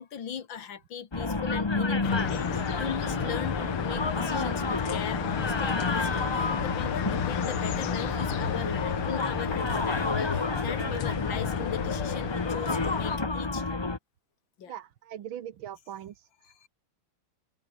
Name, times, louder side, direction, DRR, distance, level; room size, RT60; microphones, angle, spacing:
voice 1, 0.0-13.8 14.6-14.7 16.4-16.7, left 8 dB, 65° left, 2.6 m, -39 dB
sound 1, 1.1-14.0, left 3 dB, 20° left, 0.7 m, -30 dB
sound 2, 2.0-13.2, left 9 dB, 90° left, 2.4 m, -33 dB
sound 3, 5.2-13.3, right 2 dB, 45° right, 6.5 m, -61 dB
voice 2, 14.7-16.3, right 10 dB, 70° right, 1.9 m, -40 dB
open air
omnidirectional pair, 2.3 m